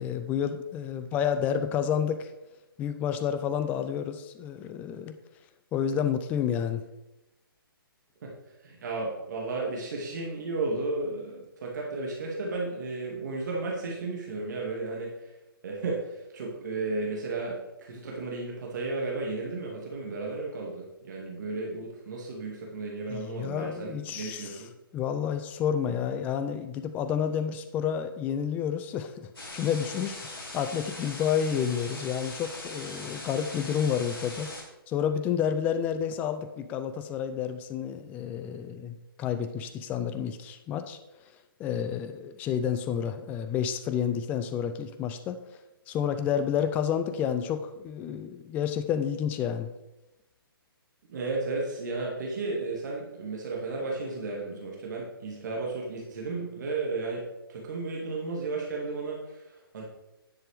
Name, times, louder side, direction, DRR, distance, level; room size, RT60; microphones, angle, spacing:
voice 1, 0.0-2.3 2.8-5.2 5.7-6.8 23.1-24.6 24.9-34.5 34.9-41.0 41.6-45.4 45.9-49.7, left 8 dB, 15° left, 10 dB, 0.4 m, -30 dB
voice 2, 8.6-15.3 15.6-24.7 51.0-57.2 57.5-59.9, right 3 dB, 50° right, -2 dB, 2.2 m, -34 dB
sound 1, 29.3-34.6, left 2 dB, 70° left, 3.7 m, -41 dB
10.0 x 8.0 x 3.5 m, 0.96 s
figure-of-eight pair, 135°, 12 cm